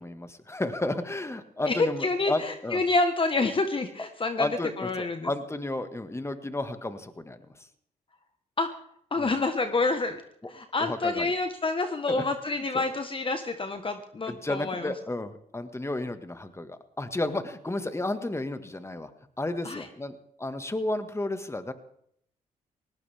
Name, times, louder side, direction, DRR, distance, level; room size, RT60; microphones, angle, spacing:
voice 1, 0.0-2.8 4.4-7.5 9.2-9.3 10.8-11.3 12.1-12.9 14.3-19.1 19.4-21.7, left 2 dB, 15° left, 9 dB, 1.8 m, -32 dB
voice 2, 1.7-4.5 4.8-5.3 8.6-8.7 9.1-10.2 10.5-14.9 19.6-19.9, left 3 dB, 35° left, 7 dB, 1.3 m, -28 dB
19.0 x 18.0 x 3.6 m, 0.69 s
supercardioid pair, 60°, 16 cm